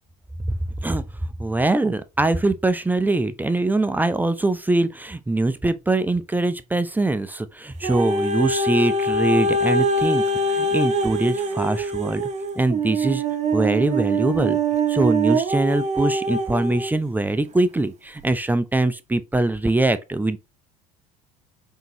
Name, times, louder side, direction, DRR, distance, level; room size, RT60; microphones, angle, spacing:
voice 1, 0.5-1.0 1.4-12.2 12.6-13.2 13.5-14.6 14.9-20.4, right 2 dB, 10° right, 0.4 m, -22 dB
sound 1, 7.8-16.9 17.6-17.7, right 2 dB, 35° right, 0.8 m, -23 dB
3.8 x 3.5 x 2.8 m
hypercardioid pair, 70°, 19 cm